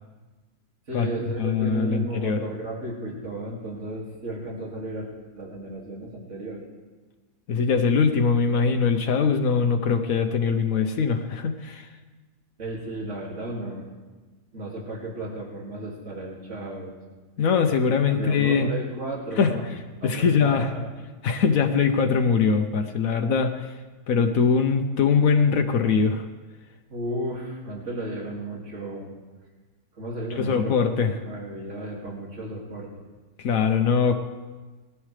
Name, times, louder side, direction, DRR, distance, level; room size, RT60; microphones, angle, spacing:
voice 1, 0.9-5.1 5.4-6.7 12.6-13.8 14.5-17.0 18.2-19.7 20.0-20.9 26.9-29.1 30.0-32.9, right 1 dB, 55° right, -3 dB, 2.8 m, -34 dB
voice 2, 1.4-2.4 7.5-11.9 17.4-18.7 19.4-19.7 20.0-20.7 21.2-23.7 24.1-26.2 30.4-31.1 33.4-34.1, left 5 dB, 75° left, 5 dB, 1.2 m, -22 dB
20.0 x 14.0 x 3.3 m, 1.3 s
omnidirectional pair, 1.5 m